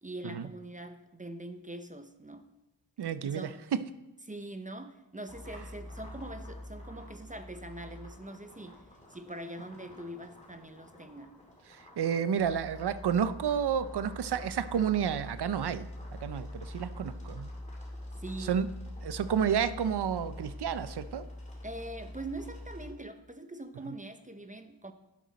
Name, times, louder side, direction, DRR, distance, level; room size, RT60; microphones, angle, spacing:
voice 1, 0.0-2.5 3.2-3.5 4.3-11.3 18.2-18.6 21.6-24.9, right 1 dB, 15° right, 8 dB, 0.7 m, -43 dB
voice 2, 3.0-3.8 11.7-17.5 18.5-18.7 19.0-21.2, right 8 dB, 60° right, 14 dB, 0.6 m, -30 dB
sound 1, 5.3-22.9, left 1 dB, 15° left, 2.5 m, -45 dB
11.5 x 10.5 x 4.1 m, 0.98 s
wide cardioid pair, 135°, 45 cm